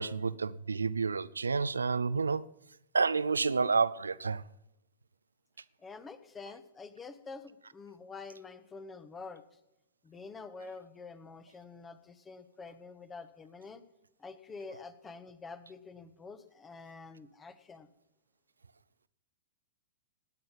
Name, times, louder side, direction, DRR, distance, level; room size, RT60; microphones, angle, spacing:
voice 1, 0.0-2.4 2.9-4.4, right 4 dB, 80° right, 0.5 m, -29 dB
voice 2, 5.8-9.4 10.0-13.8 14.2-17.9, left 4 dB, 15° left, 1.2 m, -47 dB
19.0 x 9.0 x 5.6 m
figure-of-eight pair, 100°, 0 cm